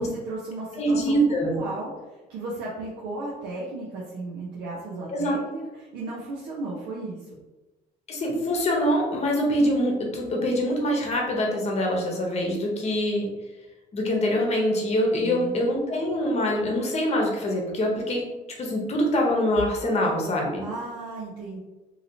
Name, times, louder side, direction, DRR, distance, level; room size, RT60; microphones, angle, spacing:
voice 1, 0.0-7.4 15.2-15.6 20.6-21.6, right 2 dB, 90° right, -5 dB, 0.6 m, -35 dB
voice 2, 0.8-1.6 5.1-5.4 8.1-13.3 13.9-18.3 18.6-20.6, equal, 40° left, 0 dB, 0.8 m, -24 dB
2.8 x 2.8 x 2.7 m, 1.1 s
cardioid pair, 110°, 17 cm